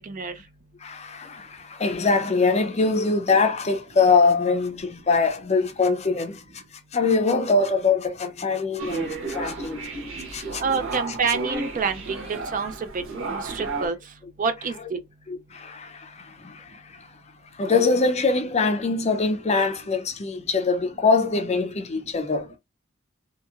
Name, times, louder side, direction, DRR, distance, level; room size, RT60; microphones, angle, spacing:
voice 1, 0.8-6.6 6.9-9.8 10.3-10.6 15.3-17.0 17.5-22.5, left 4 dB, 30° left, 0.5 m, -23 dB
sound 1, 8.8-13.9, right 3 dB, 80° right, 1.0 m, -32 dB
voice 2, 10.6-12.2 12.5-12.7 13.3-14.0 14.4-15.0, right 5 dB, 40° right, 0.4 m, -27 dB
2.8 x 2.7 x 2.3 m
head